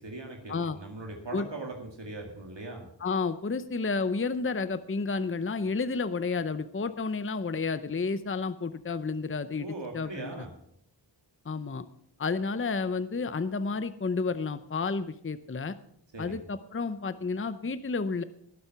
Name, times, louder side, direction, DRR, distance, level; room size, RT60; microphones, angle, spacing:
voice 1, 0.0-2.9 9.6-10.5 16.1-16.4, right 2 dB, 70° right, 1 dB, 2.2 m, -40 dB
voice 2, 3.0-9.7 9.9-10.3 11.5-11.8 12.2-15.7 16.2-18.2, left 4 dB, 30° left, 13 dB, 0.7 m, -31 dB
18.5 x 7.6 x 5.8 m, 0.71 s
wide cardioid pair, 70°, 45 cm